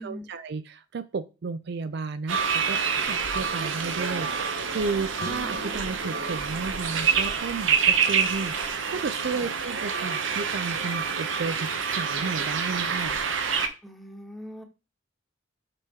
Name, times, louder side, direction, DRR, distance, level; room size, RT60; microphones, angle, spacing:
voice 1, 0.0-8.6 8.9-13.2, right 4 dB, 60° right, 13 dB, 0.4 m, -33 dB
sound 1, 2.3-13.7, right 6 dB, 80° right, 0.9 m, -27 dB
sound 2, 5.2-7.5, left 3 dB, 60° left, 0.9 m, -43 dB
voice 2, 13.8-14.6, equal, ahead, 3 dB, 1.2 m, -41 dB
6.7 x 5.7 x 3.6 m, 0.30 s
head